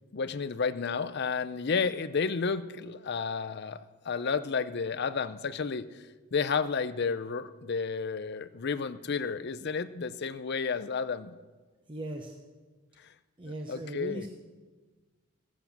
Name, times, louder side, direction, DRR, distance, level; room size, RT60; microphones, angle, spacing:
voice 1, 0.1-6.0 6.3-11.4 13.7-14.3, left 5 dB, 50° left, 13 dB, 0.5 m, -31 dB
voice 2, 11.9-12.3 13.4-14.3, right 1 dB, 25° right, 2 dB, 0.8 m, -38 dB
15.5 x 7.4 x 7.2 m, 1.3 s
head